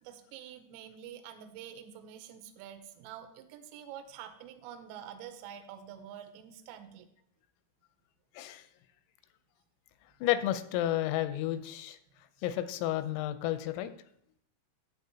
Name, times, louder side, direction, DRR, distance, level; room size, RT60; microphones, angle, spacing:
voice 1, 0.0-7.1, right 9 dB, 85° right, 7 dB, 3.1 m, -47 dB
voice 2, 8.4-8.7 10.2-12.0 12.4-13.9, left 13 dB, 90° left, 11 dB, 3.3 m, -31 dB
11.5 x 7.9 x 2.8 m, 0.69 s
omnidirectional pair, 5.9 m